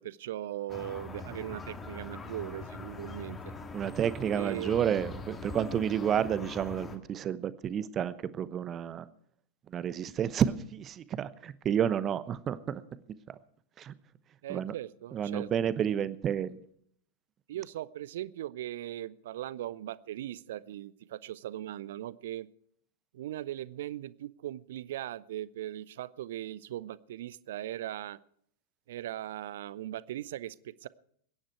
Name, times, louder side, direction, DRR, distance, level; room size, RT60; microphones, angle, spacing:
voice 1, 0.0-3.5 4.3-4.8 14.4-15.7 17.5-22.5 23.1-28.2 28.9-30.9, right 13 dB, 55° right, 19 dB, 0.6 m, -39 dB
sound 1, 0.7-7.0, left 3 dB, 20° left, 1.9 m, -42 dB
voice 2, 3.7-9.1 9.7-12.8 13.3-13.4 13.8-13.9 14.5-14.7 15.1-16.6, right 9 dB, 25° right, 15 dB, 0.9 m, -30 dB
22.0 x 10.5 x 4.7 m, 0.66 s
figure-of-eight pair, 90°, 0 cm